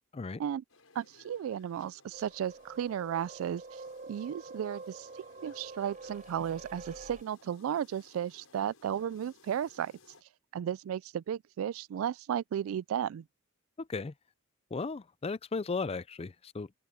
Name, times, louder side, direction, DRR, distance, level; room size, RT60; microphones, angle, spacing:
sound 1, 0.7-10.2, left 4 dB, 85° left, 6.6 m, -61 dB
voice 1, 1.0-3.8 4.1-9.9 10.5-13.2, right 9 dB, 80° right, 0.3 m, -34 dB
sound 2, 2.1-7.2, right 3 dB, 40° right, 4.5 m, -47 dB
voice 2, 13.8-14.1 14.7-16.8, left 4 dB, 30° left, 0.5 m, -36 dB
open air
head